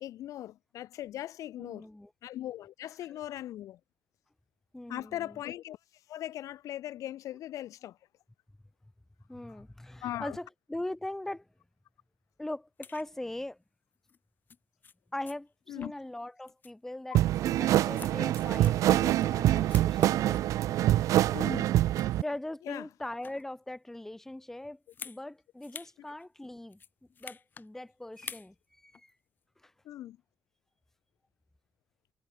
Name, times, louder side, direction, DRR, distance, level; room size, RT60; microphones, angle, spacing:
voice 1, 0.0-1.9 2.2-3.8 4.9-5.8 6.1-8.0 10.0-10.4 15.7-15.9 21.3-21.7 22.7-22.8 29.8-30.2, left 13 dB, 85° left, 1.1 m, -39 dB
voice 2, 1.6-2.1 3.1-3.2 4.7-5.4 9.3-11.5 12.4-13.6 15.1-20.4 22.2-26.8 27.2-29.1 29.6-29.7, left 1 dB, 5° left, 1.0 m, -41 dB
sound 1, 12.8-13.1 14.1-14.2 14.5-14.6 14.8-14.9 15.3-15.4 15.8-16.2 16.5-16.7 17.2-19.3 19.6-20.5 21.0-21.5 21.8-22.4 23.0-23.5 24.9-25.2 25.6-25.9 26.2-26.3 26.7-27.7 28.1-28.5 28.9-29.1, left 6 dB, 35° left, 0.9 m, -48 dB
sound 2, 17.1-22.2, right 14 dB, 85° right, 0.4 m, -25 dB
cardioid pair, 140°, 5 cm